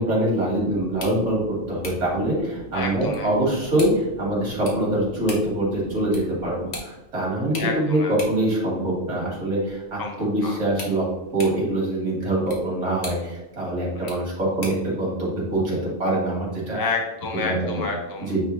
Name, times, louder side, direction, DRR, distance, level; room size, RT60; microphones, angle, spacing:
voice 1, 0.0-11.1 11.3-16.8 17.3-17.8 18.3-18.4, right 1 dB, 65° right, -4 dB, 2.5 m, -24 dB
sound 1, 0.5-6.2, right 2 dB, 80° right, 1.9 m, -42 dB
sound 2, 0.8-14.9, left 2 dB, 55° left, 1.5 m, -43 dB
voice 2, 2.7-3.3 7.6-8.1 10.0-10.6 13.9-14.3 16.7-18.3, left 4 dB, 25° left, 1 dB, 0.6 m, -30 dB
9.0 x 3.3 x 3.2 m, 1.0 s
omnidirectional pair, 1.4 m